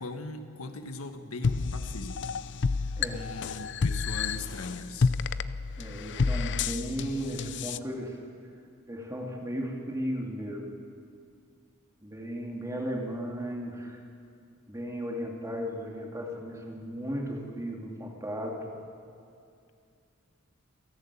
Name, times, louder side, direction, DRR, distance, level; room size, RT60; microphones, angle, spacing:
voice 1, 0.0-2.3 2.7-5.1, left 2 dB, 80° left, 7 dB, 1.4 m, -40 dB
sound 1, 1.4-7.8, left 4 dB, 55° left, 0.6 m, -30 dB
voice 2, 5.8-8.2 8.9-10.7 12.0-14.0 14.7-18.7, equal, 15° right, 0 dB, 2.7 m, -35 dB
27.5 x 11.5 x 8.4 m, 2.4 s
head